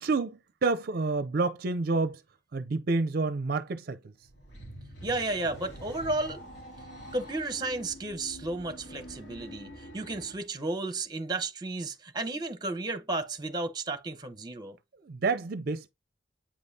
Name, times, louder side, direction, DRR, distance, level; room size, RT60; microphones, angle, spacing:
voice 1, 0.0-2.2 2.5-4.1 15.0-15.9, right 3 dB, 55° right, 0.5 m, -29 dB
sound 1, 4.2-10.5, equal, 70° left, 3.4 m, -46 dB
voice 2, 5.0-6.4 7.1-14.8, right 2 dB, 20° right, 0.9 m, -33 dB
8.7 x 5.3 x 2.7 m
head